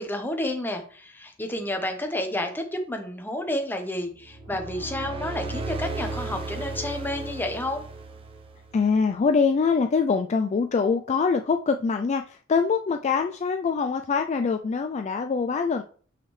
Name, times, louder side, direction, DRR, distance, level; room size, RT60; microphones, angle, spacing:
voice 1, 0.0-7.8, left 1 dB, 10° left, 4 dB, 1.0 m, -30 dB
sound 1, 4.2-8.9, right 3 dB, 25° right, 0.7 m, -35 dB
voice 2, 8.7-15.8, left 5 dB, 35° left, 6 dB, 0.3 m, -24 dB
6.5 x 5.7 x 3.2 m, 0.44 s
head